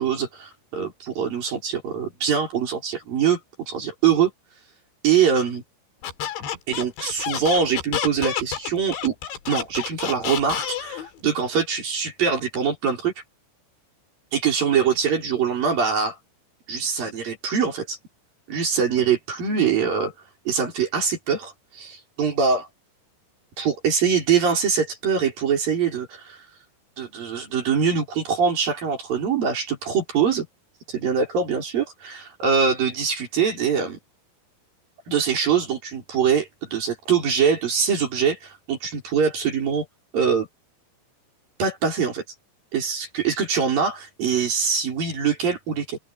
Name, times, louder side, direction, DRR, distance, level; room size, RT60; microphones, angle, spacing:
voice 1, 0.0-3.4 3.7-4.3 5.0-5.6 6.7-9.1 9.5-13.1 14.3-16.2 16.7-18.0 18.5-20.1 20.5-22.7 23.6-26.4 27.0-30.4 30.9-34.0 35.1-39.8 40.1-40.5 41.6-42.2 42.7-46.0, right 6 dB, 45° right, 6.5 m, -23 dB
Squeak, 6.0-11.1, left 9 dB, 65° left, 4.7 m, -29 dB
omnidirectional pair, 6.0 m